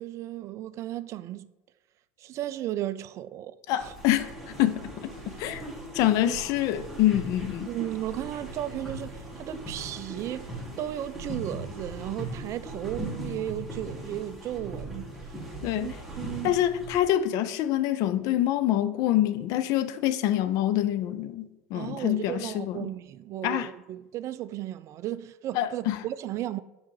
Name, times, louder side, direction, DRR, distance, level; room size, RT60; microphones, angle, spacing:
voice 1, 0.0-1.5 2.2-3.9 6.2-6.4 7.7-15.1 15.6-16.6 21.7-26.6, right 13 dB, 40° right, 0.4 m, -35 dB
voice 2, 3.7-5.1 5.4-5.7 5.9-7.7 15.6-15.9 16.4-22.9 23.4-23.7 25.5-26.0, left 13 dB, 55° left, 0.5 m, -26 dB
sound 1, 3.8-17.0, right 1 dB, ahead, 1.8 m, -39 dB
5.8 x 4.9 x 4.5 m
hypercardioid pair, 85°, 7 cm